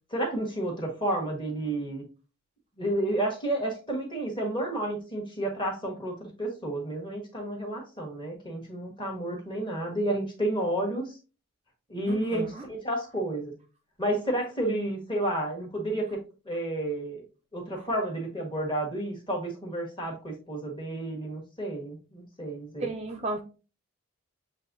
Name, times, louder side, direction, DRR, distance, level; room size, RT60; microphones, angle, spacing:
voice 1, 0.1-2.0 2.8-11.2 11.9-13.5 14.0-17.2 17.5-22.9, right 1 dB, 20° left, 0 dB, 1.3 m, -31 dB
voice 2, 12.1-12.6 22.8-23.4, right 2 dB, 30° right, 4 dB, 0.4 m, -34 dB
7.3 x 2.6 x 2.6 m, 0.34 s
head